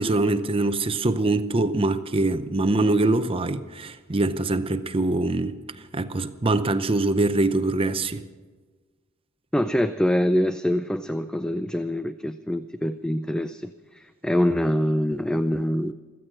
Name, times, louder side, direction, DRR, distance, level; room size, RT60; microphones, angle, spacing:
voice 1, 0.0-5.6 5.9-8.2, right 2 dB, 25° right, 0.7 m, -23 dB
voice 2, 9.5-15.9, equal, 5° left, 0.4 m, -25 dB
15.5 x 14.5 x 6.1 m
head